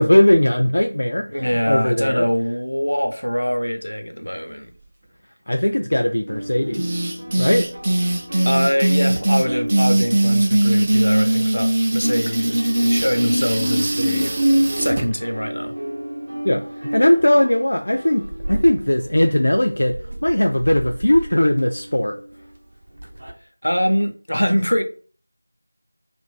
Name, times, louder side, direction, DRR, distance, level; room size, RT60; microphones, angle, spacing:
voice 1, 0.0-2.3 5.5-6.9 7.4-7.7 16.4-22.2, left 1 dB, 60° left, 0.3 m, -19 dB
voice 2, 1.3-4.7 8.5-14.3 14.7-15.7 23.6-24.8, equal, 85° left, 0.7 m, -23 dB
sound 1, 6.3-11.6 11.9-23.3, right 1 dB, 55° right, 0.8 m, -33 dB
sound 2, 6.7-15.0, right 1 dB, 25° right, 0.4 m, -20 dB
2.5 x 2.4 x 3.6 m
figure-of-eight pair, 170°, 0 cm